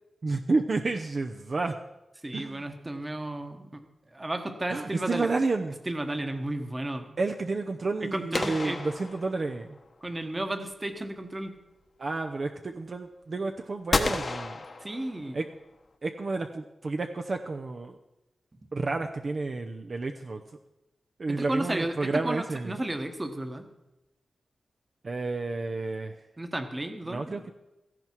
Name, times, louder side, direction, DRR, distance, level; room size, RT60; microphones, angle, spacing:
voice 1, 0.2-1.8 2.3-2.6 4.7-5.8 7.2-9.8 12.0-14.6 15.3-15.4 16.0-18.0 18.7-20.4 21.2-22.7 25.0-26.2 27.1-27.5, right 3 dB, 40° right, 4 dB, 0.8 m, -30 dB
voice 2, 2.2-3.8 4.1-5.3 5.9-7.2 8.0-8.8 10.0-11.6 14.8-15.4 21.3-23.7 26.4-27.5, right 1 dB, 20° right, 7 dB, 1.3 m, -33 dB
sound 1, 8.3-9.8 13.9-15.5, left 3 dB, 40° left, 1.1 m, -31 dB
17.0 x 15.0 x 4.6 m, 0.98 s
wide cardioid pair, 160°, 0 cm